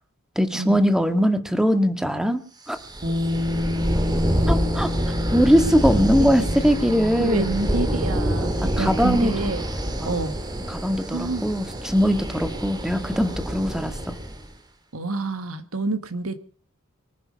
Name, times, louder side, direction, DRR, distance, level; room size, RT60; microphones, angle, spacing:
voice 1, 0.3-2.4 2.7-2.8 4.5-4.9 5.3-7.5 8.6-9.3 10.0-10.2 10.7-14.2, equal, 5° right, 8 dB, 1.7 m, -21 dB
sound 1, 2.7-14.5, right 1 dB, 20° right, 2.4 m, -27 dB
Bass guitar, 3.0-9.3, left 2 dB, 40° right, 2.2 m, -30 dB
voice 2, 7.2-9.6 10.1-10.4 11.1-11.4 14.9-16.4, right 3 dB, 90° right, 10 dB, 1.7 m, -27 dB
25.0 x 9.6 x 5.3 m, 0.43 s
head